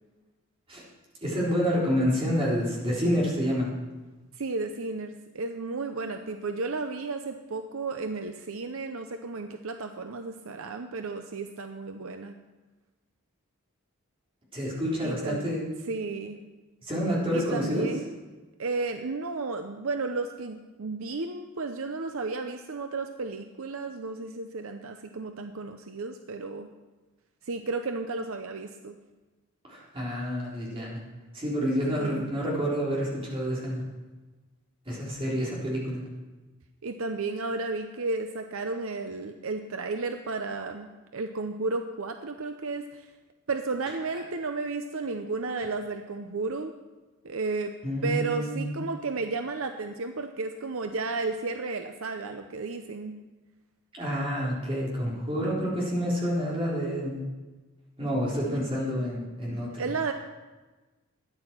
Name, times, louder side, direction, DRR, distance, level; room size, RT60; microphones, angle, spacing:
voice 1, 1.2-3.7 14.5-15.7 16.8-17.9 29.7-31.0 31.3-33.8 34.9-36.0 47.8-48.8 54.0-57.2 58.0-59.9, equal, 25° right, -5 dB, 3.8 m, -28 dB
voice 2, 4.4-12.3 15.0-15.4 15.9-16.4 17.3-18.1 18.6-26.7 27.4-29.0 31.9-32.3 36.8-40.9 41.1-43.1 43.5-46.7 47.2-47.7 48.0-53.1 58.5-58.7 59.8-60.1, right 3 dB, 65° right, 6 dB, 0.7 m, -33 dB
13.0 x 9.8 x 6.0 m, 1.2 s
head